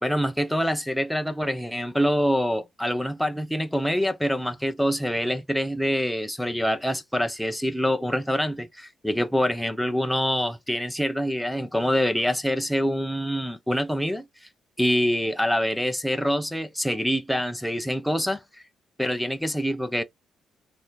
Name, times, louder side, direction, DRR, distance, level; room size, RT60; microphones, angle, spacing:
voice 1, 0.0-14.2 14.8-18.4 19.0-20.0, equal, ahead, 0.6 m, -25 dB
5.4 x 2.7 x 3.0 m
cardioid pair, 90°, 0 cm